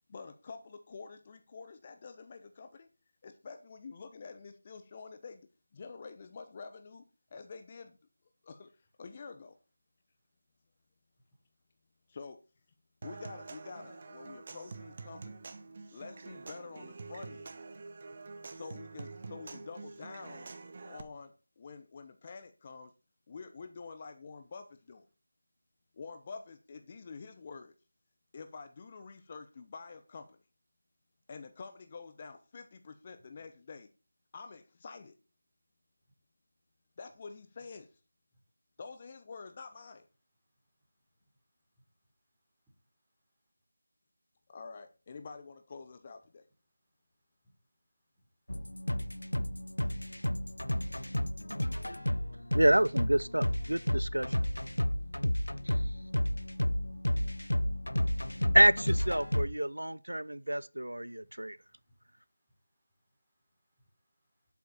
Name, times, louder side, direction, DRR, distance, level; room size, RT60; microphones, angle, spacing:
voice 1, 0.1-2.9 3.2-7.0 7.3-8.0 8.4-9.6 12.1-12.4 13.0-15.5 15.9-17.5 18.5-20.5 20.8-22.9 23.3-25.1 25.9-27.7 28.3-30.4 31.3-33.9 34.3-35.2 37.0-38.0 38.8-40.1 44.5-46.5, left 4 dB, 30° left, 0.9 m, -48 dB
Human voice / Acoustic guitar / Percussion, 13.0-21.0, right 3 dB, 35° right, 1.2 m, -46 dB
sound 1, 48.5-59.5, left 1 dB, 85° left, 0.8 m, -32 dB
voice 2, 52.5-54.4 55.7-55.8 58.5-61.6, right 1 dB, 85° right, 0.6 m, -27 dB
voice 3, 61.2-62.1 63.3-63.9 64.4-64.5, equal, 5° right, 3.7 m, -69 dB
11.5 x 8.4 x 4.2 m
figure-of-eight pair, 165°, 0 cm